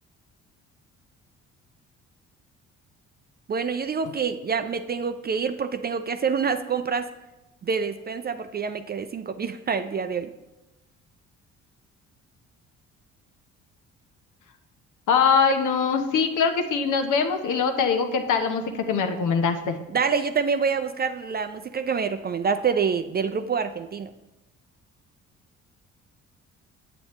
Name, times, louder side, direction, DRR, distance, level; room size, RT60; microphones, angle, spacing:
voice 1, 3.5-7.1 7.6-10.3 19.9-24.1, right 6 dB, 30° right, 9 dB, 0.4 m, -26 dB
voice 2, 15.1-19.8, left 5 dB, 60° left, 6 dB, 0.9 m, -23 dB
7.7 x 7.1 x 3.1 m, 1.0 s
hypercardioid pair, 55°, 34 cm